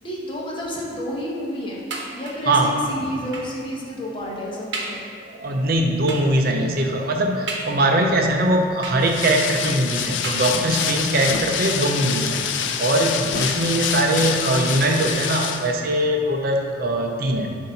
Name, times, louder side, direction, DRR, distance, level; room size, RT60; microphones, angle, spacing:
voice 1, 0.0-1.8 2.1-5.0, equal, 25° left, -4 dB, 1.0 m, -30 dB
sound 1, 1.9-2.6 3.3-3.6 4.2-4.3 4.7-5.1 6.1-6.4 7.5-8.1 8.8-9.4 10.2-10.9 11.7-11.8 12.1-12.2, right 2 dB, 75° right, 0.9 m, -34 dB
voice 2, 5.2-12.4 12.8-17.6, right 1 dB, 55° right, 2 dB, 0.5 m, -21 dB
sound 2, 9.0-15.7, left 8 dB, 85° left, 0.4 m, -26 dB
7.7 x 2.7 x 5.6 m, 2.2 s
head